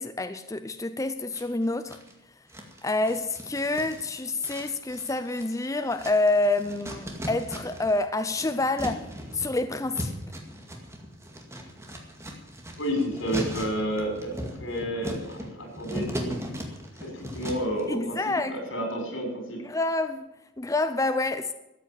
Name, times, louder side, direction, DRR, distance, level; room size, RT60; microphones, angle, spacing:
voice 1, 0.0-2.0 2.8-9.1 9.3-10.1 17.9-18.6 19.6-21.5, left 2 dB, 15° left, 0.6 m, -27 dB
sound 1, 1.3-2.1 2.5-8.0 8.2-17.8, equal, 15° right, 2.1 m, -37 dB
voice 2, 12.8-14.3 14.6-16.3 17.0-19.6, equal, 85° left, 5.9 m, -31 dB
13.5 x 9.0 x 8.7 m
head